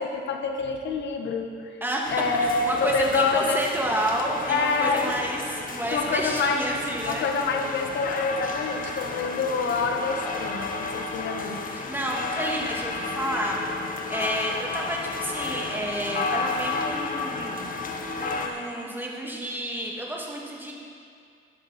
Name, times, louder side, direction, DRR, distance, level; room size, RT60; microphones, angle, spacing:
voice 1, 0.0-1.7 2.1-3.6 4.5-5.1 5.9-6.7 7.0-11.6, left 4 dB, 65° left, 4 dB, 1.4 m, -26 dB
voice 2, 1.8-2.1 2.4-7.3 11.7-13.6 14.1-17.6 18.2-20.7, right 1 dB, 10° right, -2 dB, 2.5 m, -30 dB
sound 1, 2.0-18.5, left 3 dB, 45° left, 1.4 m, -32 dB
14.5 x 11.0 x 4.4 m, 2.3 s
cardioid pair, 90°, 20 cm